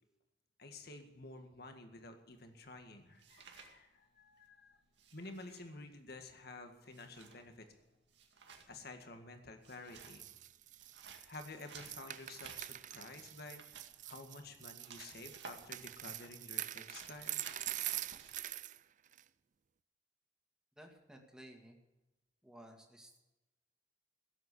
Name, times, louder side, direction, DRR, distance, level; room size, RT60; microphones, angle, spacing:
voice 1, 0.6-4.8 5.1-7.7 8.7-10.3 11.2-13.6 14.0-17.4, left 2 dB, 60° left, 6 dB, 1.8 m, -51 dB
sound 1, 2.3-4.5 4.7-18.4, right 5 dB, 70° right, 2.1 m, -57 dB
sound 2, 10.0-18.8 19.1-19.2, right 14 dB, 45° right, 0.4 m, -44 dB
voice 2, 20.8-21.8 22.4-23.2, right 1 dB, 5° right, 2 dB, 2.3 m, -56 dB
17.0 x 8.1 x 8.3 m, 1.0 s
head